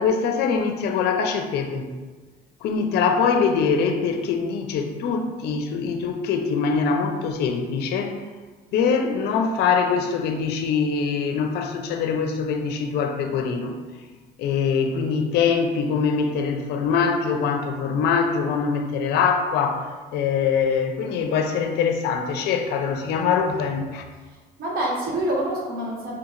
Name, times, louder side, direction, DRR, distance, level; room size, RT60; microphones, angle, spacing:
voice 1, 0.0-1.9 2.6-8.2 8.7-13.8 14.4-19.9 20.1-24.0, left 5 dB, 80° left, 5 dB, 0.5 m, -23 dB
voice 2, 24.2-26.2, right 1 dB, 65° right, -3 dB, 1.1 m, -27 dB
4.6 x 2.8 x 2.5 m, 1.3 s
cardioid pair, 110°, 17 cm